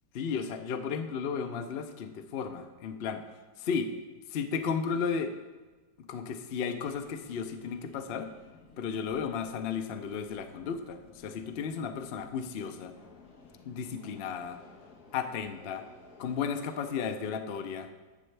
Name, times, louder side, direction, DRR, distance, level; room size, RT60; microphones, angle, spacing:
voice 1, 0.1-3.2 3.6-3.9 4.3-5.3 6.1-8.3 8.8-12.9 13.7-14.6 15.1-15.8 16.2-17.9, left 6 dB, 80° left, 8 dB, 0.5 m, -34 dB
Subway metro underground, 6.7-16.9, left 4 dB, 60° left, 1.6 m, -56 dB
11.5 x 7.8 x 3.3 m, 1.3 s
omnidirectional pair, 1.9 m